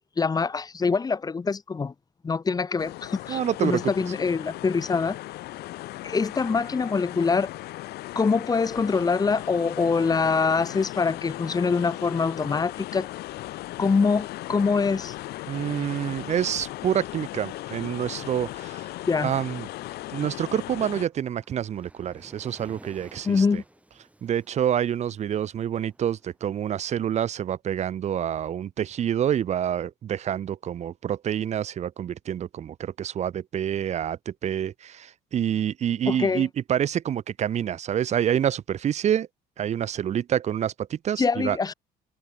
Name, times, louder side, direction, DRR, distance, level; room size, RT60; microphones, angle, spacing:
voice 1, 0.2-1.9 2.2-5.2 6.0-7.5 8.1-13.1 13.8-15.1 19.1-19.3 23.2-23.6 36.1-36.5 41.2-41.7, left 4 dB, 20° left, 0.9 m, -24 dB
sound 1, 2.8-21.1, left 17 dB, 75° left, 0.6 m, -37 dB
voice 2, 3.3-3.9 15.5-18.9 19.2-19.7 20.1-23.6 24.2-39.3 39.6-41.6, right 9 dB, 40° right, 0.6 m, -27 dB
Waves surf, 20.3-27.4, right 1 dB, 10° right, 5.7 m, -54 dB
cardioid pair, 110°, 17 cm